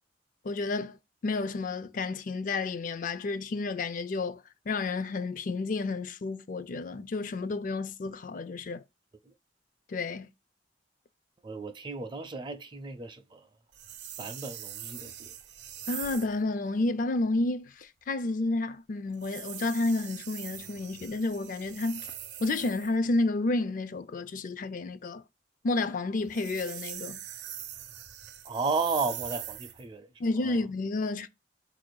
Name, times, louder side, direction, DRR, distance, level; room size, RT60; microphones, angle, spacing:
voice 1, 0.4-8.8 9.9-10.3 15.9-22.1 22.4-25.2 25.6-27.2 30.2-31.3, left 2 dB, 50° left, 0.4 m, -31 dB
voice 2, 11.4-13.4 14.2-15.3 28.4-30.1 30.4-30.6, right 4 dB, 25° right, 0.5 m, -34 dB
sound 1, 13.7-16.4 19.1-23.0 26.2-29.9, right 11 dB, 75° right, 0.6 m, -42 dB
4.6 x 2.5 x 4.6 m
head